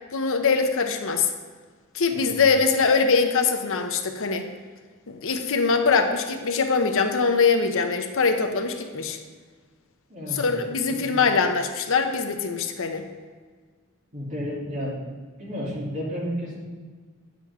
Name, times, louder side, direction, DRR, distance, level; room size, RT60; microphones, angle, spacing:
voice 1, 0.1-1.3 1.9-4.5 5.1-9.2 10.3-13.0, left 5 dB, 60° left, 6 dB, 0.8 m, -22 dB
voice 2, 2.1-2.4 10.1-10.5 10.8-11.3 14.1-15.0 15.4-16.6, equal, 35° right, -6 dB, 3.0 m, -32 dB
9.9 x 7.6 x 3.6 m, 1.5 s
head